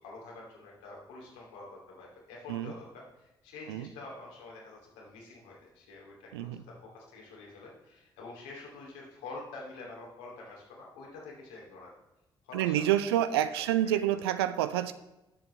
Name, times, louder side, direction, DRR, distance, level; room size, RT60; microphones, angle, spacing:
voice 1, 0.0-11.9 12.4-14.0, left 3 dB, 70° left, -2 dB, 2.7 m, -47 dB
voice 2, 6.3-6.6 12.5-14.9, right 12 dB, 75° right, 13 dB, 0.5 m, -28 dB
17.0 x 7.5 x 3.2 m, 0.96 s
figure-of-eight pair, 40°, 13 cm